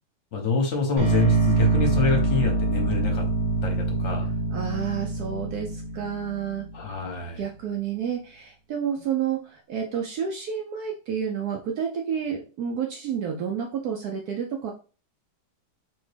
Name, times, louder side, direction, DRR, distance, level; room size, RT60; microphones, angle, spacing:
voice 1, 0.3-3.2 3.6-4.3 6.7-7.4, left 4 dB, 45° left, 2 dB, 1.0 m, -26 dB
sound 1, 1.0-7.0, right 3 dB, 20° right, 1.6 m, -25 dB
voice 2, 4.5-6.6 7.4-14.7, right 8 dB, 75° right, 2 dB, 0.9 m, -30 dB
4.2 x 2.9 x 3.3 m, 0.36 s
omnidirectional pair, 2.2 m